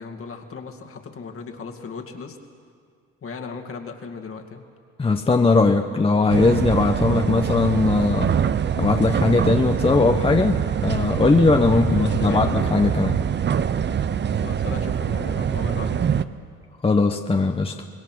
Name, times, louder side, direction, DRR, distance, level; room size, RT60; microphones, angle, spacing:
voice 1, 0.0-2.4 3.2-4.6 7.2-7.4 11.7-12.4 14.3-16.1, left 5 dB, 50° left, 4 dB, 2.3 m, -37 dB
voice 2, 5.0-8.3 8.8-13.2 16.8-17.9, left 3 dB, 20° left, 5 dB, 1.0 m, -19 dB
sound 1, 6.3-16.2, right 8 dB, 35° right, 0.8 m, -24 dB
25.5 x 20.5 x 6.2 m, 2.1 s
supercardioid pair, 80°, 29 cm